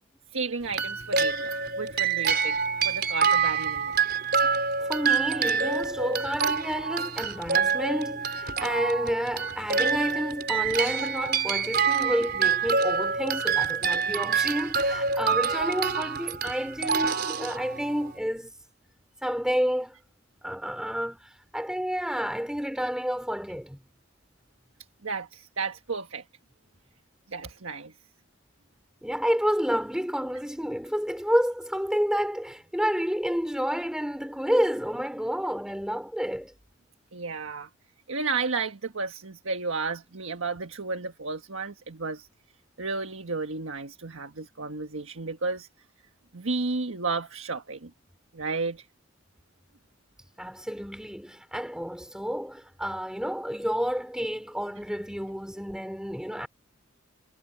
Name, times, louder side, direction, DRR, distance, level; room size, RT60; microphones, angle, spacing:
voice 1, 0.3-2.5 2.8-4.0 25.0-26.2 27.3-27.9 37.1-37.7 38.1-42.3 42.8-45.7 46.3-47.9 48.3-48.8, right 4 dB, 90° right, 1.5 m, -32 dB
sound 1, 0.7-18.1, right 5 dB, 50° right, 5.1 m, -27 dB
voice 2, 4.8-18.5 19.2-20.0 20.4-21.2 21.5-23.8 29.0-36.5 50.4-56.5, equal, 5° right, 4.3 m, -30 dB
head